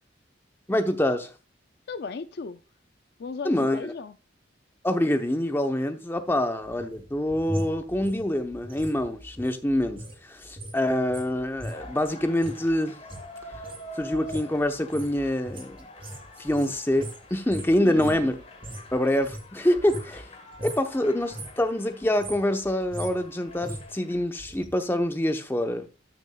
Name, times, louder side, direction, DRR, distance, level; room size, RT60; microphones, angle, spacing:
voice 1, 0.7-1.3 3.4-3.8 4.8-13.0 14.0-15.8 16.4-18.4 18.9-20.3 20.6-25.9, left 1 dB, 10° left, 0.8 m, -26 dB
voice 2, 1.9-2.6 3.2-4.2 17.8-18.3, left 4 dB, 55° left, 0.4 m, -36 dB
sound 1, 6.6-10.2 10.4-18.9 19.2-20.3 20.5-20.9 21.2-21.7 22.0-24.7 25.0-25.1, right 1 dB, 30° right, 2.6 m, -39 dB
sound 2, 11.7-24.2, left 1 dB, 35° left, 1.6 m, -46 dB
13.5 x 6.3 x 2.3 m
head